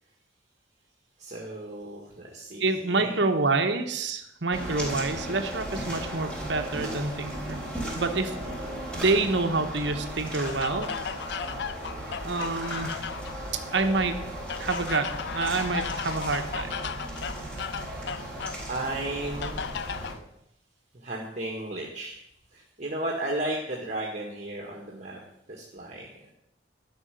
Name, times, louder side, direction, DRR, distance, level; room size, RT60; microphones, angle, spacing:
voice 1, 1.2-3.3 18.1-18.3 18.7-19.6 20.9-22.2 22.5-25.2 25.5-26.1, right 1 dB, 40° right, -1 dB, 1.8 m, -34 dB
voice 2, 2.6-7.6 7.9-8.4 8.9-10.9 12.2-13.0 13.7-14.2 14.6-16.7, right 3 dB, 65° right, 6 dB, 1.2 m, -27 dB
sound 1, 4.5-20.2, right 1 dB, 5° left, 3.9 m, -36 dB
sound 2, 10.4-13.4 14.5-18.6 19.4-20.2, left 7 dB, 60° left, 0.5 m, -35 dB
12.5 x 6.3 x 9.2 m, 0.80 s
head